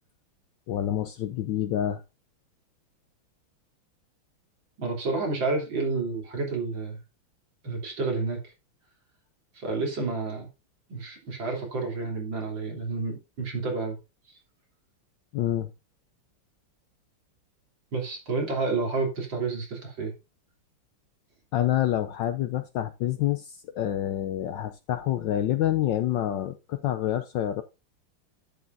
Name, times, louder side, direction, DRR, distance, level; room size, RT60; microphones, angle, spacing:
voice 1, 0.7-2.0 15.3-15.7 21.5-27.6, left 12 dB, 70° left, 1.1 m, -27 dB
voice 2, 4.8-7.0 7.6-8.4 9.5-10.5 10.9-14.0 17.9-20.1, right 3 dB, 60° right, 3.9 m, -30 dB
11.0 x 8.4 x 2.6 m
omnidirectional pair, 2.4 m